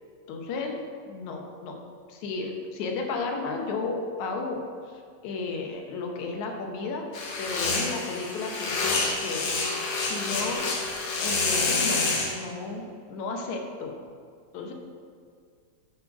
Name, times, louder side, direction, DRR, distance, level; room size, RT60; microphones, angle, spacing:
voice 1, 0.3-0.8 1.1-1.8 2.1-4.6 4.9-7.0 7.4-9.5 10.0-10.6 11.0-12.1 12.3-14.0 14.5-14.7, left 4 dB, 80° left, 2 dB, 2.2 m, -33 dB
sound 1, 7.1-12.3, left 3 dB, 60° left, 1.2 m, -28 dB
8.2 x 4.0 x 5.8 m, 2.2 s
omnidirectional pair, 3.3 m